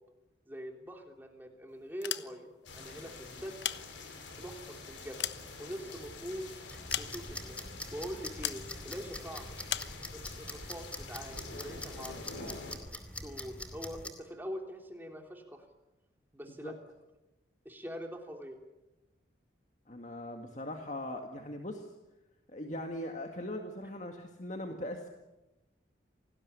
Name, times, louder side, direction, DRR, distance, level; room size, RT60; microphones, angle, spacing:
voice 1, 0.5-3.6 4.4-5.2 5.6-6.5 7.0-9.6 10.1-12.5 13.2-15.6 16.3-16.7 17.6-18.6, equal, 10° right, 3 dB, 3.3 m, -44 dB
sound 1, 1.9-2.7 3.4-4.4 4.9-6.1 6.9-7.5 8.4-8.7 9.7-10.0, left 11 dB, 70° left, 1.2 m, -37 dB
sound 2, 2.7-12.8, left 3 dB, 85° left, 5.8 m, -47 dB
sound 3, 6.7-14.1, left 1 dB, 5° left, 2.7 m, -44 dB
voice 2, 19.9-21.9 22.5-25.1, left 1 dB, 40° left, 4 dB, 2.0 m, -40 dB
28.0 x 19.5 x 9.6 m, 1.0 s
head